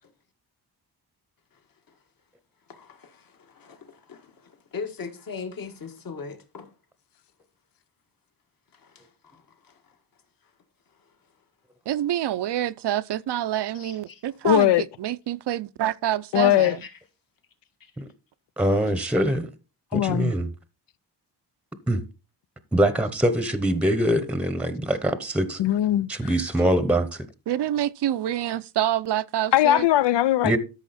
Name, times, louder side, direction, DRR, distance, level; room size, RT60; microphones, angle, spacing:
voice 1, 2.7-6.7 8.7-10.0 11.1-11.2 13.7-14.2 16.6-17.0 17.8-17.9, left 5 dB, 55° left, 1.8 m, -40 dB
voice 2, 11.9-16.8 27.5-29.9, right 12 dB, 75° right, 0.6 m, -27 dB
voice 3, 14.4-14.8 16.3-16.8 19.9-20.3 25.6-26.1 29.5-30.5, left 13 dB, 85° left, 0.6 m, -19 dB
voice 4, 18.6-19.5 19.9-20.5 21.9-22.0 22.7-25.6 26.1-27.3 30.4-30.6, right 1 dB, 5° right, 0.8 m, -23 dB
13.0 x 5.8 x 4.2 m
wide cardioid pair, 160°, 41 cm